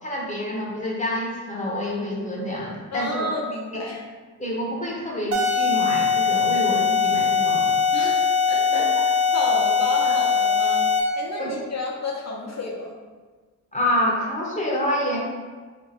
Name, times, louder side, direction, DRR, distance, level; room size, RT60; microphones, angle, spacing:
voice 1, 0.0-3.3 3.7-3.9 4.4-7.8 8.7-8.8 10.0-10.1 11.4-11.5 13.7-15.2, left 1 dB, 20° left, -3 dB, 0.8 m, -27 dB
voice 2, 2.9-4.0 7.9-8.1 8.5-8.9 9.3-10.9 11.2-13.0, left 2 dB, 55° left, -1 dB, 0.8 m, -30 dB
sound 1, 5.3-11.2, left 5 dB, 45° right, 0.7 m, -21 dB
2.6 x 2.5 x 4.2 m, 1.4 s
cardioid pair, 55°, 33 cm